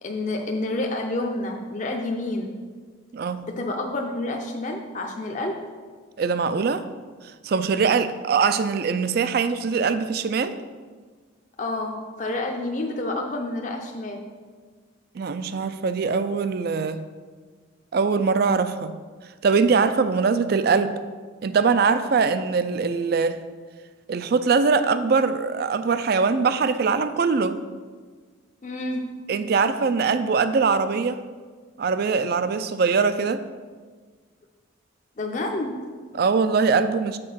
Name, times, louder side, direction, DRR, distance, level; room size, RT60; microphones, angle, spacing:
voice 1, 0.0-2.6 3.4-5.6 11.6-14.3 28.6-29.2 35.2-36.0, left 2 dB, 40° left, 2 dB, 0.5 m, -29 dB
voice 2, 3.1-3.4 6.2-6.8 7.4-10.6 15.1-17.0 17.9-19.0 19.4-21.0 21.4-23.4 24.1-27.6 29.3-31.2 31.8-33.4 36.1-37.2, right 5 dB, 50° right, 12 dB, 0.4 m, -22 dB
6.6 x 4.5 x 5.7 m, 1.5 s
head